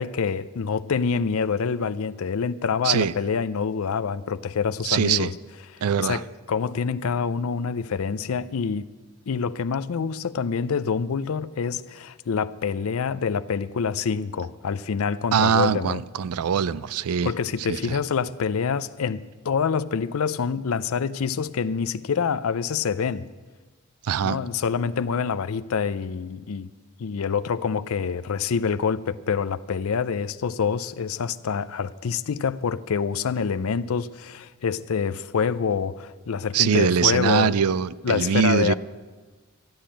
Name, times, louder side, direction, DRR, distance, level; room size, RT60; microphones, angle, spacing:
voice 1, 0.0-5.3 5.7-8.9 9.3-16.0 17.2-23.3 24.2-26.7 27.0-37.6 38.0-38.7, left 6 dB, 70° left, 0.5 m, -26 dB
voice 2, 4.8-5.3 5.8-6.2 15.3-17.3 17.7-18.0 24.0-24.4 36.5-38.7, right 7 dB, 85° right, 0.4 m, -22 dB
13.5 x 10.0 x 8.8 m
head